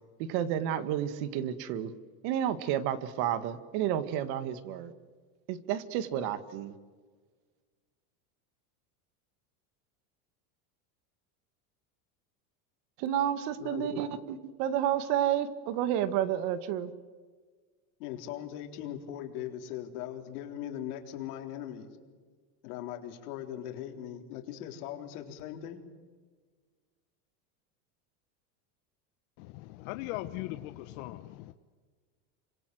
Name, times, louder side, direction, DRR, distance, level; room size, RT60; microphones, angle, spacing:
voice 1, 0.2-1.9 2.2-4.9 5.5-6.8 13.0-16.9, right 10 dB, 55° right, 2.0 m, -31 dB
voice 2, 13.6-14.0 18.0-21.9 22.6-25.8, left 11 dB, 75° left, 4.1 m, -40 dB
voice 3, 29.4-31.5, left 16 dB, 60° left, 1.2 m, -39 dB
28.0 x 25.5 x 7.9 m
supercardioid pair, 140°, 46 cm